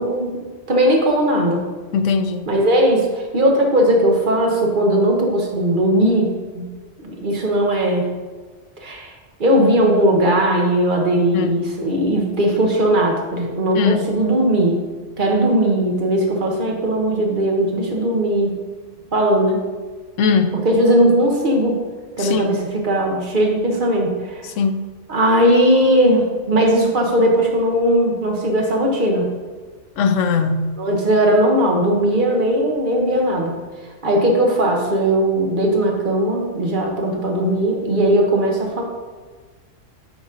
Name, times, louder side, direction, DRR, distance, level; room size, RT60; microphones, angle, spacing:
voice 1, 0.0-1.6 2.5-6.7 7.0-8.1 8.8-9.1 9.4-14.8 15.2-18.6 19.1-19.6 20.6-21.8 22.2-24.4 25.1-29.3 30.8-33.5 34.0-38.8, right 1 dB, 45° right, 0 dB, 1.2 m, -18 dB
voice 2, 1.9-2.5 11.3-11.7 13.8-14.1 20.2-20.6 22.2-22.6 24.4-24.9 30.0-30.8, left 5 dB, 80° left, 9 dB, 1.0 m, -20 dB
9.6 x 4.0 x 3.8 m, 1.4 s
omnidirectional pair, 1.3 m